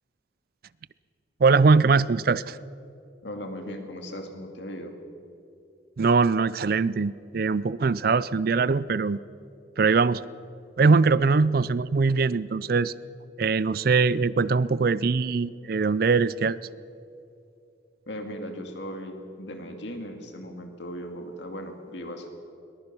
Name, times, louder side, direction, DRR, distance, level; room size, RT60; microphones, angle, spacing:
voice 1, 1.4-2.6 6.0-9.2 9.8-10.2 10.8-12.9 13.4-16.6, right 4 dB, 50° right, 19 dB, 0.4 m, -22 dB
voice 2, 3.2-4.9 18.1-22.3, equal, 70° left, 4 dB, 2.5 m, -37 dB
22.0 x 20.0 x 6.1 m, 2.6 s
head